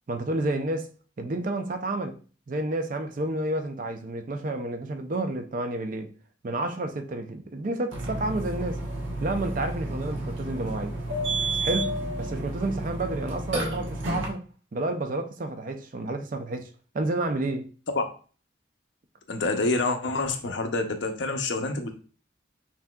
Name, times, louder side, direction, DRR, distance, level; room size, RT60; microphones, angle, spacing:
voice 1, 0.1-0.9 1.2-2.2 2.5-6.1 6.4-8.8 9.2-11.0 11.6-14.4 14.7-16.7 16.9-17.7, right 2 dB, 45° right, 0.5 m, -30 dB
Burping eructation, 7.9-14.3, right 2 dB, 85° right, 1.0 m, -31 dB
voice 2, 19.3-21.9, left 3 dB, 70° left, 0.7 m, -27 dB
5.8 x 2.7 x 2.3 m
head